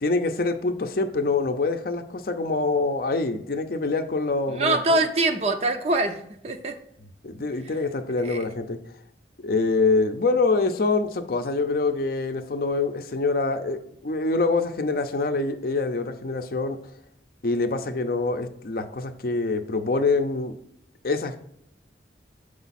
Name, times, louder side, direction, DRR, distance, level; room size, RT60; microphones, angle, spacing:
voice 1, 0.0-5.0 7.2-8.8 9.4-16.8 17.4-20.6 21.0-21.4, left 3 dB, 55° left, 7 dB, 0.6 m, -25 dB
voice 2, 4.5-6.7 8.2-8.4, right 2 dB, 35° right, 7 dB, 0.6 m, -24 dB
7.0 x 4.9 x 4.1 m, 0.72 s
head